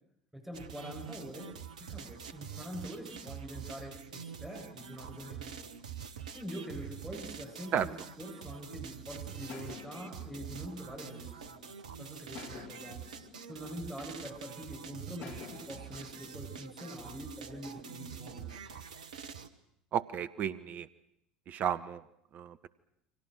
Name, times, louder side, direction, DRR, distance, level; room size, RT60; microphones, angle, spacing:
voice 1, 0.3-1.5 1.8-5.6 6.3-11.6 12.0-13.0 13.5-18.5, equal, 5° right, 0 dB, 7.4 m, -44 dB
sound 1, 0.5-19.5, right 7 dB, 75° right, 1.4 m, -46 dB
sound 2, 8.2-8.9 9.5-11.7 12.3-14.6 15.2-17.5, left 6 dB, 60° left, 3.2 m, -51 dB
voice 2, 19.9-20.9 21.5-22.0 22.3-22.6, right 9 dB, 45° right, 14 dB, 1.1 m, -32 dB
29.5 x 25.0 x 6.5 m, 0.78 s
figure-of-eight pair, 65°, 4 cm